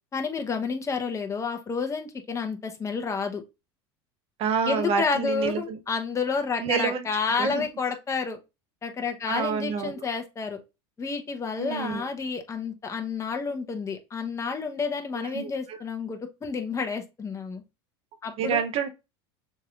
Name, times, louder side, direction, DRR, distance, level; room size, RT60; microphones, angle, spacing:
voice 1, 0.1-3.4 4.6-8.4 8.8-10.6 11.0-17.6 18.2-18.6, left 5 dB, 20° left, 0.9 m, -30 dB
voice 2, 4.4-5.8 6.6-7.1 7.4-7.7 9.3-10.0 11.6-12.1 15.1-15.8 18.4-18.9, right 6 dB, 45° right, 0.8 m, -28 dB
6.4 x 3.3 x 2.5 m
hypercardioid pair, 100°, 13 cm